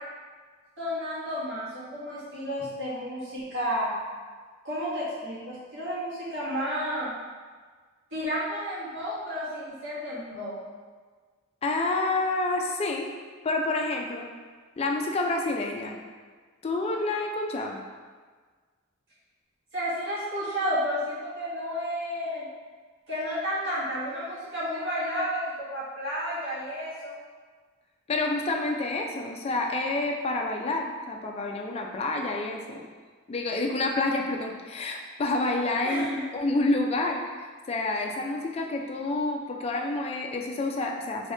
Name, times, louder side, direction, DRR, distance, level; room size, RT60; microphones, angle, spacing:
voice 1, 0.8-3.9 4.6-7.1 8.1-10.6 19.7-22.5 23.1-27.2 35.8-36.3, equal, 65° right, -10 dB, 1.3 m, -31 dB
voice 2, 11.6-13.1 13.4-14.3 14.8-16.0 16.6-17.8 28.1-32.8 33.3-36.1 36.3-41.3, left 2 dB, 30° left, 1 dB, 0.3 m, -28 dB
2.8 x 2.7 x 3.2 m, 1.5 s
head